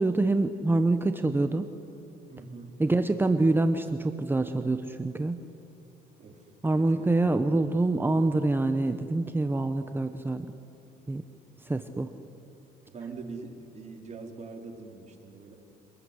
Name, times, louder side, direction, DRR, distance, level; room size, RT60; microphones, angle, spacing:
voice 1, 0.0-1.6 2.8-5.4 6.6-10.5 11.1-11.2 11.6-12.1, right 2 dB, 10° right, 8 dB, 1.0 m, -26 dB
voice 2, 2.3-2.8 6.2-6.4 6.7-7.4 12.8-15.6, right 4 dB, 40° right, 2 dB, 4.3 m, -43 dB
26.5 x 21.5 x 10.0 m, 2.7 s
cardioid pair, 110°, 17 cm